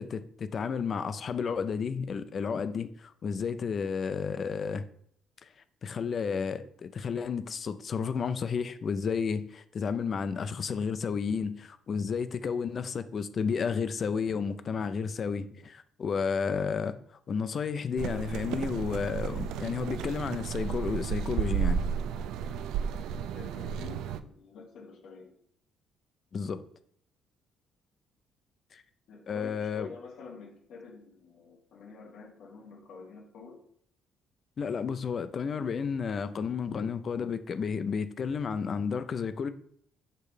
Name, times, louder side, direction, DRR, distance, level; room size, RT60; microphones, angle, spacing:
voice 1, 0.0-4.9 5.8-17.0 17.3-21.8 26.3-26.6 28.7-28.8 29.3-29.9 34.6-39.5, left 6 dB, 35° left, 0.4 m, -32 dB
sound 1, 18.0-24.2, right 8 dB, 80° right, 0.4 m, -33 dB
voice 2, 23.3-25.3 29.1-33.6, left 5 dB, 60° left, 2.3 m, -48 dB
6.6 x 3.2 x 4.9 m
cardioid pair, 155°, 0 cm